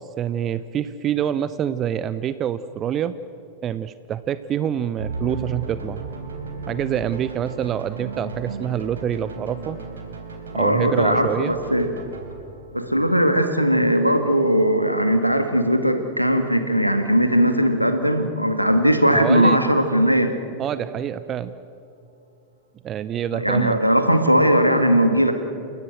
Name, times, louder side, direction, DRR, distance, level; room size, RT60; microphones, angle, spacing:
voice 1, 0.0-3.1 3.6-6.1 6.7-9.8 10.5-11.5 19.1-19.6 20.6-21.5 22.8-23.8, right 9 dB, 30° right, 14 dB, 0.7 m, -26 dB
sound 1, 5.0-17.6, right 3 dB, 70° right, 3.8 m, -36 dB
voice 2, 10.5-11.9 12.7-20.3 23.3-25.3, equal, 90° right, 7 dB, 1.9 m, -19 dB
29.5 x 16.5 x 7.7 m, 2.6 s
figure-of-eight pair, 90°, 0 cm